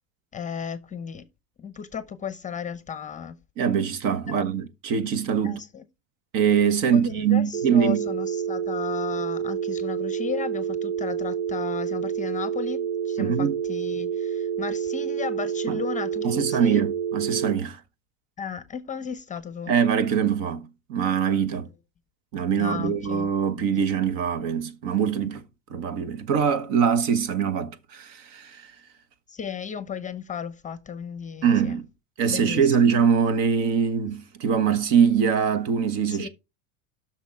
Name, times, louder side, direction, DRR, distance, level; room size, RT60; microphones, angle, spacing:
voice 1, 0.3-1.3 1.6-3.4 4.3-4.4 5.4-5.8 6.9-16.9 18.4-19.7 21.5-21.6 22.5-23.3 23.6-23.9 29.3-31.8 32.3-32.8 36.1-36.3, left 7 dB, 20° left, 0.7 m, -35 dB
voice 2, 3.6-5.6 6.3-8.0 13.2-13.5 15.7-15.8 16.2-17.8 19.7-21.7 22.3-25.4 25.7-28.7 31.4-31.8 32.2-36.3, right 7 dB, 55° right, 1.5 m, -23 dB
sound 1, 7.5-17.5, right 8 dB, 75° right, 0.9 m, -28 dB
8.3 x 6.3 x 4.7 m
supercardioid pair, 130°, 39 cm